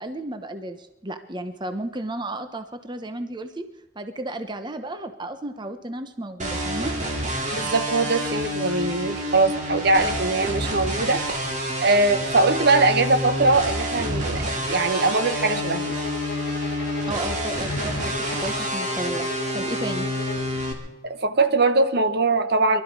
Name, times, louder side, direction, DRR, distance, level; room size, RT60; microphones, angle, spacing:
voice 1, 0.0-3.7 3.9-6.9 17.1-19.3 19.5-20.1, right 1 dB, 25° right, 8 dB, 0.9 m, -33 dB
sound 1, 6.4-20.7, equal, 40° right, 2.7 m, -28 dB
voice 2, 7.5-11.2 11.8-15.9 21.0-22.8, right 3 dB, 55° right, 9 dB, 1.0 m, -21 dB
sound 2, 14.8-20.5, left 4 dB, 55° left, 0.7 m, -36 dB
23.5 x 12.5 x 4.8 m, 1.0 s
head